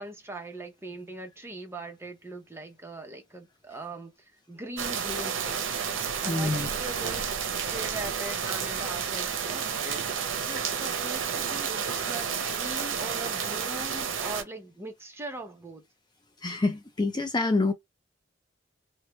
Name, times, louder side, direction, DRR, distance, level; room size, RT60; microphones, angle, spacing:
voice 1, 0.0-5.6 6.2-10.1 10.4-15.9, right 2 dB, 15° right, 0.7 m, -41 dB
sound 1, 4.8-14.4, right 7 dB, 80° right, 0.6 m, -31 dB
voice 2, 6.3-6.7 16.4-17.7, left 3 dB, 20° left, 0.4 m, -26 dB
3.0 x 2.2 x 3.0 m
head